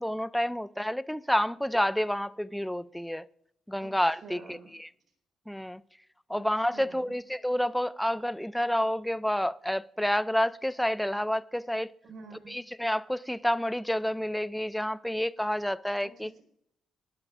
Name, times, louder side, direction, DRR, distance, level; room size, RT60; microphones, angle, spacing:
voice 1, 0.0-3.3 3.7-4.9 5.5-5.8 6.3-11.9 12.5-16.3, equal, 5° left, 0.4 m, -29 dB
voice 2, 3.8-4.7 6.3-7.1 12.0-12.6 16.0-16.4, right 4 dB, 50° right, 4.4 m, -49 dB
19.0 x 12.0 x 2.5 m
cardioid pair, 90°, 0 cm